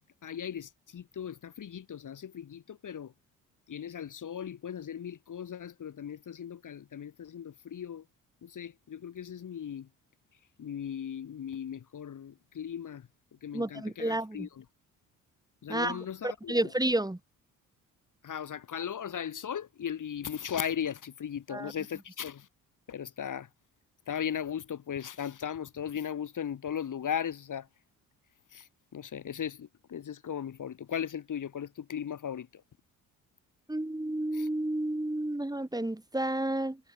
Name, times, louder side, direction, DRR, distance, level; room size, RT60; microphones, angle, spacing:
voice 1, 0.2-3.1 3.7-8.0 8.4-9.9 10.6-13.1 13.4-14.6 15.6-16.6 18.2-22.5 22.9-23.5 24.1-27.7 28.5-32.6 34.3-34.5, left 8 dB, 50° left, 3.1 m, -37 dB
voice 2, 13.5-14.5 15.7-17.2 21.5-21.7 33.7-36.8, right 1 dB, 10° right, 4.4 m, -31 dB
hypercardioid pair, 55°, 40 cm